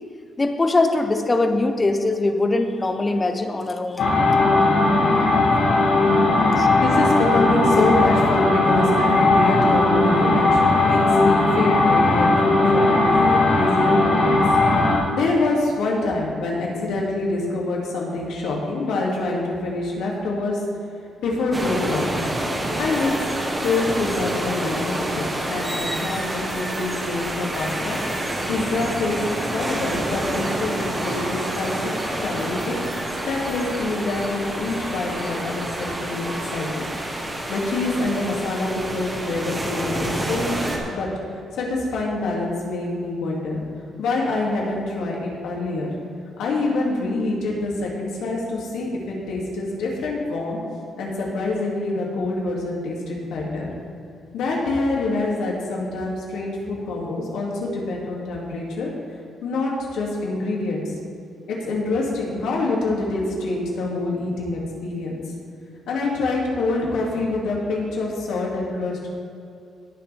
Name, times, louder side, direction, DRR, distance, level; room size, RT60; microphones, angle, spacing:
voice 1, 0.4-4.1 6.6-6.7, left 2 dB, 20° left, 6 dB, 0.8 m, -22 dB
sound 1, 4.0-15.0, left 2 dB, 65° left, 2.6 m, -18 dB
voice 2, 6.1-6.4 6.8-14.4 14.9-20.6 21.2-22.1 22.8-23.1 23.6-28.0 28.5-29.2 29.5-37.0 37.3-41.1 41.5-43.6 44.0-45.9 46.4-50.6 51.0-53.7 54.3-58.9 59.4-60.9 61.5-65.2 65.9-69.1, left 2 dB, 85° left, -2 dB, 2.5 m, -26 dB
sound 2, 21.5-40.8, right 1 dB, 15° right, 1.3 m, -28 dB
19.0 x 6.7 x 3.5 m, 2.5 s
cardioid pair, 150°, 0 cm